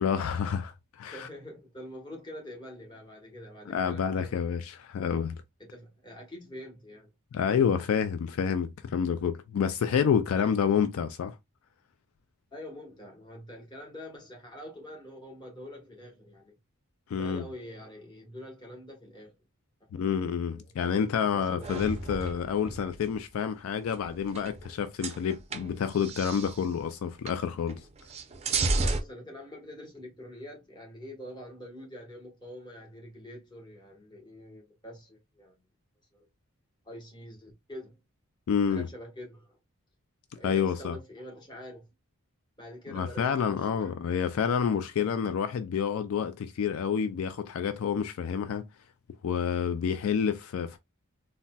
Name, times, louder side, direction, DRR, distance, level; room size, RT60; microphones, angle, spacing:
voice 1, 0.0-1.3 3.7-5.4 7.3-11.4 17.1-17.4 19.9-27.8 38.5-38.9 40.4-41.0 42.9-48.6 49.2-50.8, left 7 dB, 70° left, 0.3 m, -28 dB
voice 2, 1.1-4.3 5.6-7.1 10.3-10.6 12.5-16.5 17.1-19.4 19.9-20.7 21.2-21.8 28.6-35.5 36.1-36.3 36.8-38.0 38.7-39.6 40.3-41.8 42.6-43.9, equal, 20° left, 1.1 m, -45 dB
sound 1, 21.6-23.1 23.9-24.7 25.0-26.6 27.3-27.4 27.7-29.0, right 3 dB, 30° right, 0.5 m, -32 dB
3.9 x 2.1 x 2.2 m
head